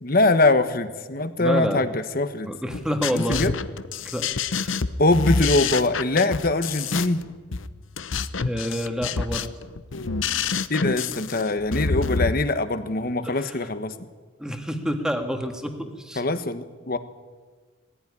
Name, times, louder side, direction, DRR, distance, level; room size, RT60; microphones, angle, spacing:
voice 1, 0.0-2.5 3.1-3.5 5.0-7.2 10.7-13.9 16.2-17.0, left 2 dB, 45° left, 10 dB, 1.2 m, -22 dB
voice 2, 1.4-1.9 2.5-3.5 4.0-4.3 4.6-4.7 8.3-9.5 13.2-13.6 14.4-16.2, equal, 5° right, 5 dB, 1.8 m, -28 dB
sound 1, 2.7-12.3, left 5 dB, 80° left, 0.8 m, -27 dB
20.5 x 15.5 x 9.8 m, 1.4 s
head